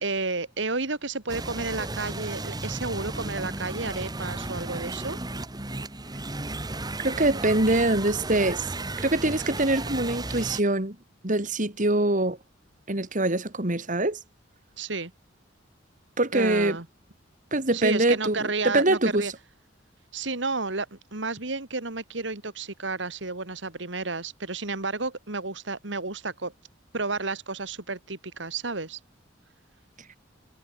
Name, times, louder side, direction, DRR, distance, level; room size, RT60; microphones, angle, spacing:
voice 1, 0.0-5.2 14.8-15.1 16.3-16.9 17.7-19.3 20.1-26.5 26.9-29.0, right 3 dB, 65° right, 2.5 m, -31 dB
sound 1, 1.3-10.6, right 2 dB, 20° right, 1.7 m, -34 dB
voice 2, 7.0-11.0 11.2-12.4 12.9-14.2 16.2-16.8 17.5-19.3, right 2 dB, 40° right, 2.7 m, -24 dB
head